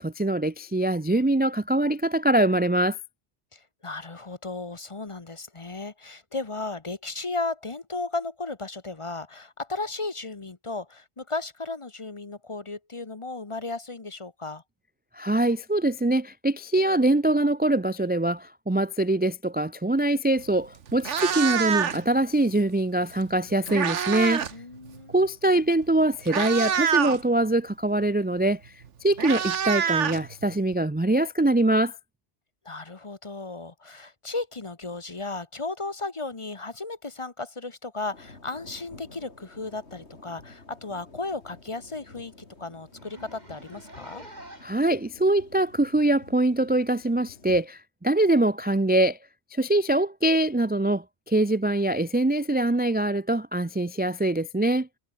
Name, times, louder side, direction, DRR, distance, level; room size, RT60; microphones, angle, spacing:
voice 1, 0.0-3.0 15.1-24.4 25.1-28.7 29.0-32.0 44.6-49.2 49.5-54.9, right 1 dB, 15° right, 0.4 m, -23 dB
voice 2, 3.5-14.6 24.5-25.1 32.6-42.3 42.6-44.2, left 3 dB, 30° left, 1.0 m, -35 dB
Meow, 20.4-20.5 20.9-22.2 23.2-24.6 24.8-25.1 25.8-25.9 26.2-27.2 28.5-28.6 28.8-30.7, right 7 dB, 90° right, 1.5 m, -26 dB
sound 1, 38.0-47.7, left 3 dB, 70° left, 3.6 m, -50 dB
Zipper (clothing), 40.2-40.4 40.8-40.9 41.3-41.4 41.7-41.8 42.1-42.2 42.9-44.9 45.6-45.7 46.7-46.8, right 1 dB, 35° right, 6.3 m, -47 dB
omnidirectional pair, 1.2 m